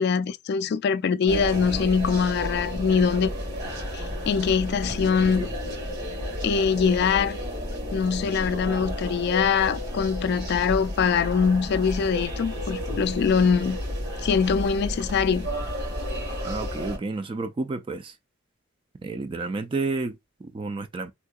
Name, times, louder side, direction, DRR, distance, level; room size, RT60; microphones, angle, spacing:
voice 1, 0.0-3.3 3.9-5.5 6.4-7.4 7.9-13.8 14.2-15.5, left 6 dB, 55° left, 0.3 m, -23 dB
sound 1, 1.3-17.0, equal, 55° right, 2.2 m, -32 dB
voice 2, 16.4-18.2 19.0-21.1, right 3 dB, 25° right, 0.3 m, -31 dB
3.7 x 2.7 x 2.3 m
head